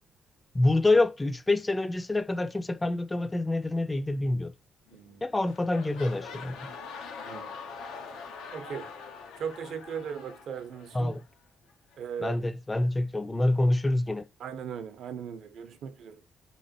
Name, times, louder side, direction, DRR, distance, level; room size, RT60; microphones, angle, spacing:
voice 1, 0.5-4.5 5.2-6.7 10.9-11.2 12.2-14.2, left 2 dB, 15° left, 0.3 m, -26 dB
sound 1, 4.9-5.2 5.4-11.3 11.9-12.0, left 5 dB, 90° left, 0.5 m, -43 dB
voice 2, 4.9-5.3 7.2-7.5 8.5-8.9 9.4-11.2 12.0-12.4 14.4-16.3, right 7 dB, 75° right, 0.5 m, -38 dB
3.0 x 2.4 x 2.7 m
cardioid pair, 90°, 0 cm